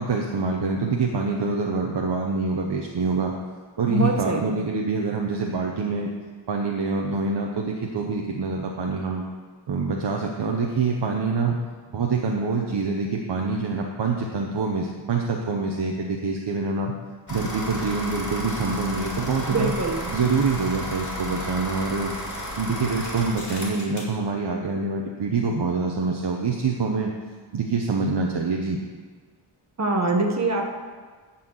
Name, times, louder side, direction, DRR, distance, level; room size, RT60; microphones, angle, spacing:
voice 1, 0.0-3.3 3.8-6.1 6.5-9.2 9.7-11.6 11.9-16.9 17.3-19.7 20.1-22.1 22.6-27.1 27.5-28.8, right 4 dB, 60° right, 0 dB, 0.9 m, -25 dB
voice 2, 3.9-4.6 19.5-20.1 29.8-30.6, right 2 dB, 35° right, 2 dB, 1.3 m, -24 dB
sound 1, 17.3-24.2, left 1 dB, 40° left, 2.8 m, -33 dB
11.0 x 4.4 x 7.9 m, 1.5 s
wide cardioid pair, 130°, 46 cm